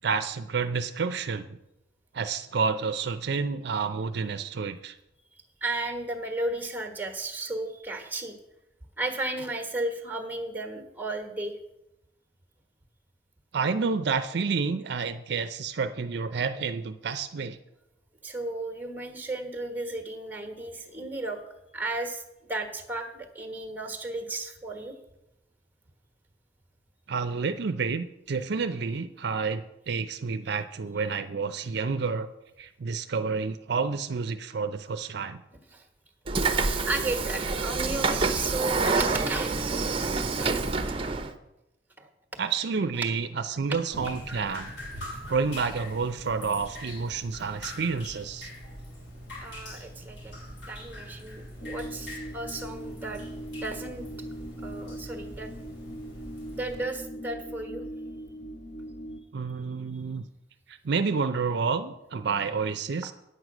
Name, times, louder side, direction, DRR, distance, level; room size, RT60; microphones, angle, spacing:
voice 1, 0.0-1.6 2.1-5.0 13.5-17.6 27.1-32.3 32.6-35.4 42.4-44.7 45.3-48.5 59.3-60.2 60.7-63.1, right 5 dB, 60° right, 8 dB, 0.5 m, -29 dB
voice 2, 5.6-8.4 9.0-11.5 18.2-21.4 21.7-22.2 22.5-24.9 35.7-35.8 36.9-41.0 42.0-42.1 49.4-50.3 50.7-53.2 53.6-54.1 54.6-55.6 56.5-57.9, right 2 dB, 10° right, 4 dB, 1.3 m, -34 dB
Train / Sliding door, 36.3-41.3, right 4 dB, 30° right, 0.8 m, -27 dB
Drip, 43.9-56.8, left 1 dB, 70° left, 3.5 m, -42 dB
sound 1, 51.6-59.2, right 1 dB, 40° left, 1.2 m, -40 dB
9.6 x 8.0 x 6.0 m, 0.91 s
head